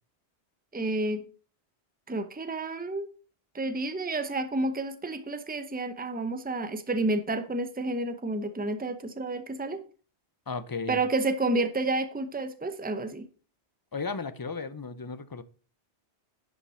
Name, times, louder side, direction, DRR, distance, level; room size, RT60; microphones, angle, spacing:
voice 1, 0.7-1.2 2.1-3.1 3.5-9.8 10.9-13.3, right 2 dB, 10° right, 0.7 m, -30 dB
voice 2, 10.5-11.0 13.9-15.4, left 4 dB, 25° left, 0.5 m, -35 dB
10.5 x 5.8 x 5.6 m
omnidirectional pair, 1.1 m